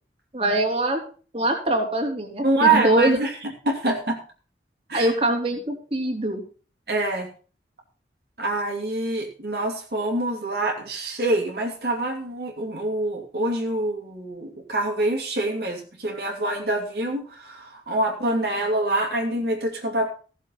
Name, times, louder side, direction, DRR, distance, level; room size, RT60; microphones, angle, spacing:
voice 1, 0.3-1.0 1.3-3.2 3.8-4.0 4.9-6.4, right 1 dB, 35° right, 0 dB, 3.3 m, -23 dB
voice 2, 2.4-3.3 3.7-4.2 4.9-5.1 6.9-7.3 8.4-20.1, right 2 dB, 60° right, 0 dB, 2.8 m, -25 dB
16.0 x 7.3 x 5.8 m, 0.38 s
head